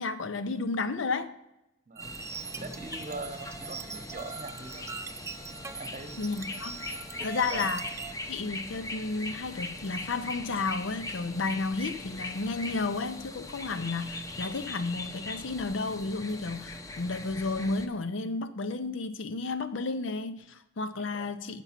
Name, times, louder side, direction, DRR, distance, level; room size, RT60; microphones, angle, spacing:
voice 1, 0.0-1.3 6.2-6.8 7.2-7.9 8.3-21.6, left 3 dB, 75° left, 0.6 m, -32 dB
sound 1, 2.0-17.9, left 2 dB, 20° left, 0.6 m, -41 dB
sound 2, 2.0-8.1, right 5 dB, 15° right, 0.3 m, -41 dB
voice 2, 2.6-4.9 5.8-6.2 7.5-7.7 20.9-21.3, right 2 dB, 40° right, 0.9 m, -42 dB
9.2 x 6.9 x 5.8 m
head